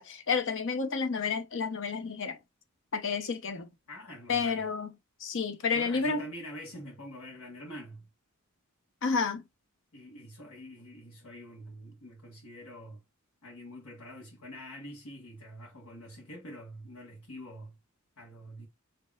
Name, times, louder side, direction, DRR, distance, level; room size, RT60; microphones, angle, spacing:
voice 1, 0.0-2.4 2.9-3.7 4.3-4.9 5.2-6.3 9.0-9.4, left 5 dB, 60° left, 0.7 m, -30 dB
voice 2, 3.9-4.6 5.7-8.1 9.9-13.0 13.4-17.7 18.2-18.7, equal, 90° left, 1.3 m, -46 dB
5.3 x 2.8 x 2.3 m
head